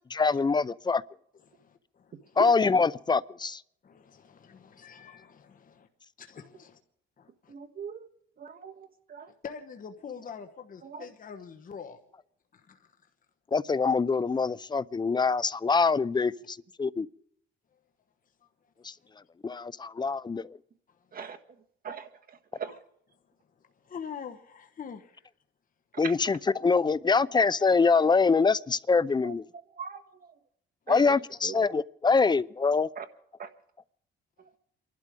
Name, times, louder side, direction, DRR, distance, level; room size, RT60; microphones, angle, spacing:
voice 1, 0.1-1.0 2.4-3.6 13.5-17.1 18.8-18.9 19.4-20.5 26.0-29.4 30.9-32.9, left 4 dB, 20° left, 0.5 m, -24 dB
voice 2, 3.8-5.9 6.2-6.8 7.2-7.5 9.4-12.0 12.7-12.8 23.9-25.2, left 6 dB, 45° left, 1.3 m, -44 dB
voice 3, 7.5-8.1 8.4-9.3 10.8-11.1 15.1-15.2 16.4-16.5 21.1-21.4 21.8-22.8 25.9-26.1 29.2-30.3 30.9-31.7 32.9-33.1 33.4-33.5 34.4-34.6, right 6 dB, 50° right, 1.5 m, -41 dB
28.5 x 12.0 x 3.7 m
cardioid pair, 90°, 20 cm